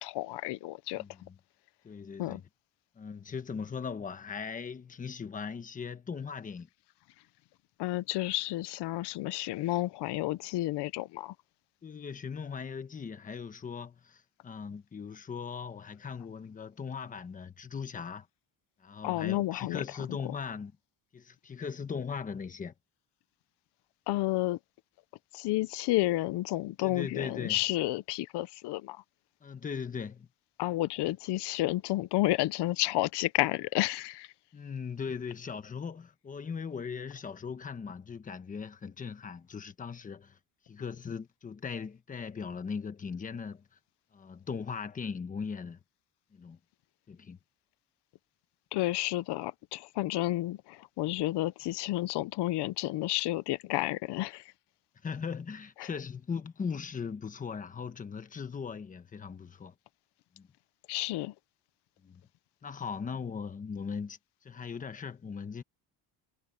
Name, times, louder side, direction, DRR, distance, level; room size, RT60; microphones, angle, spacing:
voice 1, 0.0-1.0 2.2-2.4 7.8-11.3 19.0-19.8 24.1-24.6 25.3-29.0 30.6-34.3 48.7-54.4 55.8-55.9 60.9-61.3, left 17 dB, 85° left, 0.8 m, -31 dB
voice 2, 1.0-1.4 1.8-2.4 3.0-6.7 11.8-18.3 18.8-20.7 21.1-22.7 26.8-27.6 29.4-30.3 34.5-40.4 40.7-43.6 44.1-45.8 46.3-46.6 47.1-47.4 55.0-59.7 60.4-60.5 62.0-62.2 62.6-65.6, left 6 dB, 20° left, 1.1 m, -39 dB
cardioid pair, 180°, 40 cm